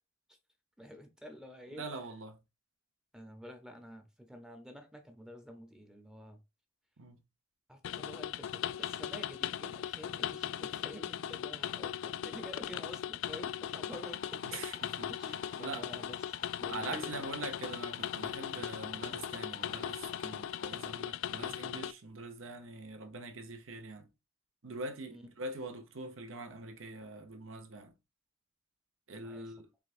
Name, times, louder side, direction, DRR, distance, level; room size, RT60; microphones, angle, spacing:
voice 1, 0.8-1.9 3.1-6.4 7.7-14.7 15.1-17.3 25.1-25.3 29.1-29.5, equal, 5° right, 0.6 m, -49 dB
voice 2, 1.8-2.4 7.0-7.2 14.4-15.1 15.6-15.9 16.7-24.1 24.6-27.9 29.1-29.7, right 2 dB, 90° right, 0.9 m, -43 dB
sound 1, 7.8-21.9, left 10 dB, 75° left, 0.3 m, -38 dB
sound 2, 13.9-20.7, left 4 dB, 45° left, 0.7 m, -53 dB
4.9 x 3.4 x 2.5 m
head